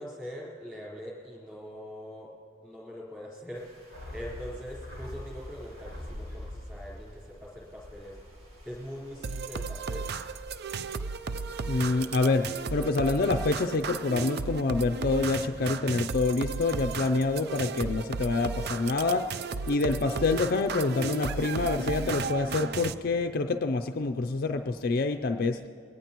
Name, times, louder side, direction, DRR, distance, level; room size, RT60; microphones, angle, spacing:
voice 1, 0.0-2.3 2.6-3.7 4.1-8.2 8.6-10.1, equal, 5° right, -5 dB, 4.1 m, -42 dB
sound 1, 3.5-13.4, equal, 85° right, 3.3 m, -53 dB
sound 2, 3.9-8.5 8.8-8.9, left 1 dB, 70° right, 4.0 m, -42 dB
sound 3, 9.2-22.9, right 4 dB, 50° right, 0.4 m, -34 dB
voice 2, 11.7-25.6, left 3 dB, 45° left, 5 dB, 0.4 m, -27 dB
22.0 x 18.0 x 3.0 m, 2.5 s
head